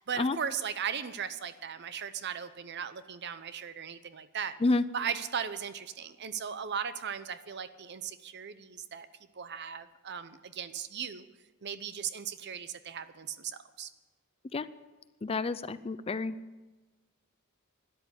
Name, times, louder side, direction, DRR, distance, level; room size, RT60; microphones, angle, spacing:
voice 1, 0.0-4.6 4.9-9.1 9.3-11.3 11.6-13.9, right 7 dB, 50° right, 13 dB, 0.7 m, -37 dB
voice 2, 15.2-16.3, left 3 dB, 25° left, 15 dB, 0.4 m, -29 dB
12.5 x 10.5 x 8.3 m, 1.2 s
head